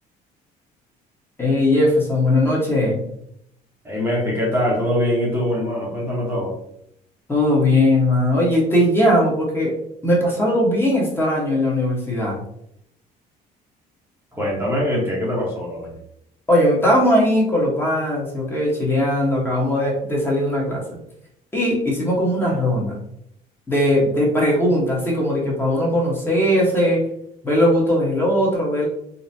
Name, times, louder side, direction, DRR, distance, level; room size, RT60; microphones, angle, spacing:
voice 1, 1.4-3.0 7.3-9.7 10.0-12.4 16.5-20.8 21.5-22.9 23.7-27.0 27.4-28.8, left 1 dB, 15° left, -4 dB, 1.2 m, -19 dB
voice 2, 3.8-6.6 14.3-15.9, equal, 15° right, -5 dB, 0.9 m, -23 dB
3.9 x 2.2 x 2.7 m, 0.74 s
cardioid pair, 110°, 17 cm